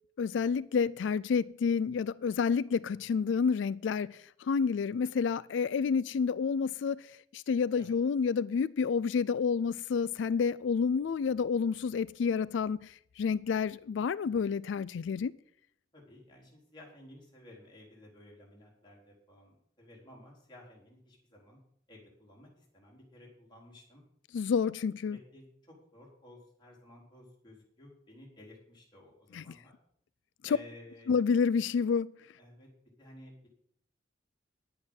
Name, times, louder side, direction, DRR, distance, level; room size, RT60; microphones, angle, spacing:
voice 1, 0.2-15.3 24.3-25.2 29.3-29.6 31.1-32.1, left 6 dB, 75° left, 0.4 m, -29 dB
voice 2, 15.9-21.6 21.9-24.0 25.0-29.7 30.4-31.2 32.4-32.7 33.0-33.5, left 1 dB, 25° left, 4.1 m, -54 dB
10.5 x 8.5 x 6.3 m
head